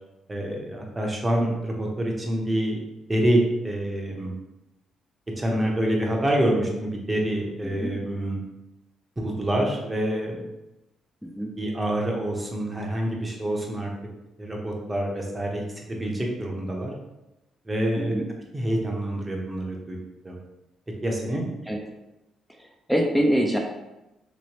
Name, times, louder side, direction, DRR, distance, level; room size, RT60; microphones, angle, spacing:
voice 1, 0.3-2.8 3.1-4.3 5.4-8.4 9.2-10.4 11.6-13.9 14.4-15.6 15.9-16.9 17.7-18.1 18.5-20.0 20.2-20.4 21.0-21.5, right 1 dB, 20° right, 0 dB, 0.8 m, -26 dB
voice 2, 7.6-7.9 11.2-11.5 18.0-18.3 21.7-21.8 22.5-22.6 22.9-23.6, equal, ahead, 1 dB, 0.5 m, -24 dB
3.1 x 3.0 x 2.9 m, 0.96 s
cardioid pair, 90°, 0 cm